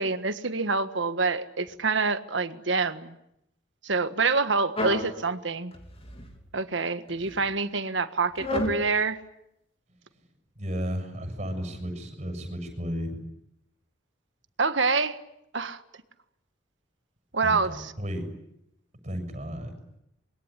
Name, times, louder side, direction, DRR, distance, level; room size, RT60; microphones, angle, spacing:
voice 1, 0.0-3.2 3.8-5.7 6.5-9.2 14.6-15.2 15.5-15.8 17.3-17.9, right 4 dB, 70° right, 10 dB, 1.6 m, -26 dB
sound 1, 4.8-5.1 5.7-6.4 7.1-7.4 8.4-8.8, left 1 dB, 30° left, 3.2 m, -31 dB
voice 2, 10.6-13.2 17.4-18.3 19.0-19.8, equal, 35° right, 7 dB, 6.9 m, -33 dB
26.0 x 22.0 x 10.0 m, 0.81 s
head